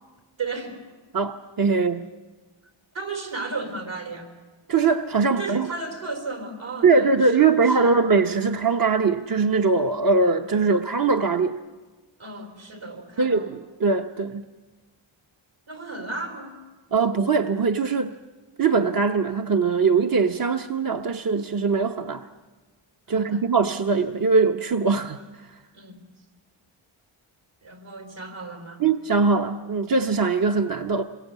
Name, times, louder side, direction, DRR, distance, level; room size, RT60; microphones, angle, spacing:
voice 1, 0.4-0.8 2.9-4.3 5.4-8.0 12.2-13.5 15.7-16.6 23.1-23.4 25.7-26.0 27.6-28.8, right 3 dB, 70° right, 5 dB, 4.7 m, -34 dB
voice 2, 1.1-2.1 4.7-5.7 6.8-11.6 13.2-14.4 16.9-18.1 18.6-22.3 23.1-25.2 28.8-31.0, right 4 dB, 45° right, 6 dB, 1.0 m, -21 dB
26.5 x 22.5 x 8.2 m, 1.3 s
cardioid pair, 65°, 50 cm